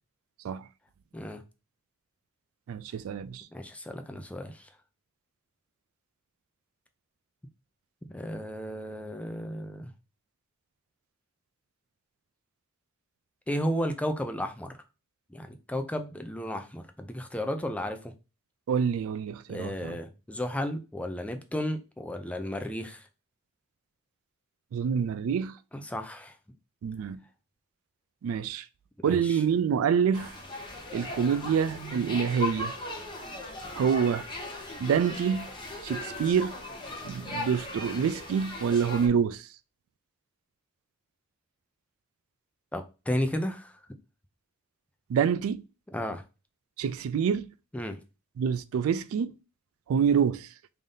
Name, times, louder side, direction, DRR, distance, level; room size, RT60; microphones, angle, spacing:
voice 1, 2.7-3.5 18.7-20.0 24.7-25.6 26.8-27.2 28.2-28.7 29.0-30.3 30.9-32.7 33.8-34.2 34.8-35.5 35.8-36.5 37.0-39.5 45.1-45.6 46.8-47.5 48.4-49.3 49.9-50.5, right 7 dB, 75° right, 0.3 m, -27 dB
voice 2, 3.5-4.7 8.1-9.9 13.5-14.8 15.3-18.1 19.5-23.0 25.7-26.3 29.0-29.4 42.7-43.7 45.9-46.2 47.7-48.0, equal, 5° left, 0.4 m, -33 dB
sound 1, 30.1-39.1, left 2 dB, 25° left, 0.9 m, -38 dB
3.4 x 2.6 x 3.7 m
head